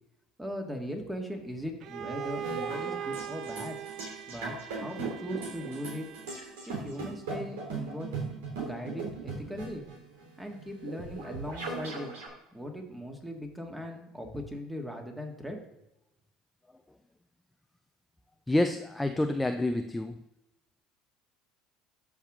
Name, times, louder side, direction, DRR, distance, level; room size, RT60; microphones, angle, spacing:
voice 1, 0.4-3.8 4.3-4.5 4.8-6.1 6.8-8.1 8.6-9.8 10.4-12.1 12.5-15.6, equal, 10° right, 3 dB, 2.0 m, -39 dB
Bowed string instrument, 1.8-6.6, right 9 dB, 55° right, 0.4 m, -40 dB
sound 1, 2.2-12.3, right 3 dB, 80° right, 3.2 m, -39 dB
voice 2, 18.5-20.2, left 1 dB, 10° left, 6 dB, 0.5 m, -28 dB
13.5 x 4.8 x 3.7 m, 0.90 s
hypercardioid pair, 75°, 0 cm